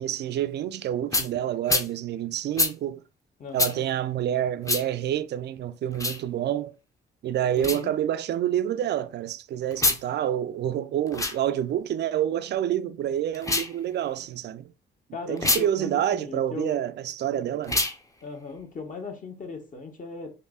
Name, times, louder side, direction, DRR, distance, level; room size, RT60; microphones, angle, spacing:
voice 1, 0.0-3.0 3.5-6.7 7.2-14.7 15.3-17.9, right 11 dB, 60° right, 0.4 m, -28 dB
sound 1, 1.1-1.3 1.7-1.9 2.6-2.7 3.6-3.7 4.6-4.8 5.9-6.2 7.6-7.8 9.7-10.0 11.1-11.4 13.3-13.7 15.4-15.6 17.6-18.0, left 2 dB, 15° left, 0.6 m, -25 dB
voice 2, 3.4-3.9 7.4-7.9 15.1-16.8 18.2-20.3, left 4 dB, 40° left, 1.0 m, -38 dB
5.4 x 2.1 x 2.3 m
cardioid pair, 90°, 20 cm